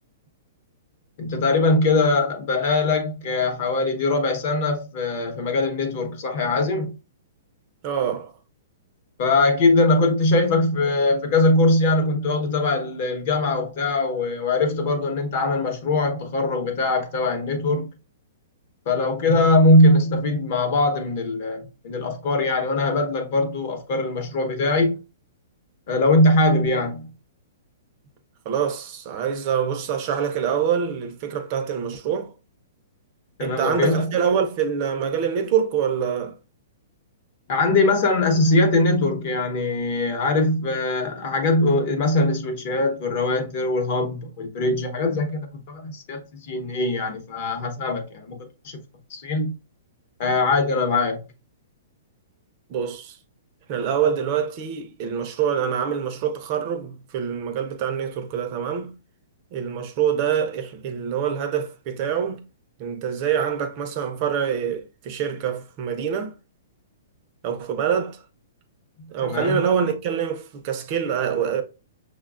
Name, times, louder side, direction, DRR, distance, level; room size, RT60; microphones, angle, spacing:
voice 1, 1.2-6.9 9.2-17.9 18.9-25.0 25.9-27.1 33.4-34.1 37.5-48.4 48.6-48.8 49.1-49.5 50.2-51.2 69.2-69.6, left 2 dB, 40° left, 0.8 m, -21 dB
voice 2, 7.8-8.3 28.5-32.3 33.4-36.4 52.7-53.2 53.7-58.9 59.5-62.4 62.8-66.3 67.4-68.2 69.1-71.6, right 8 dB, 30° right, 0.4 m, -25 dB
6.0 x 2.2 x 2.3 m
hypercardioid pair, 170°, 0 cm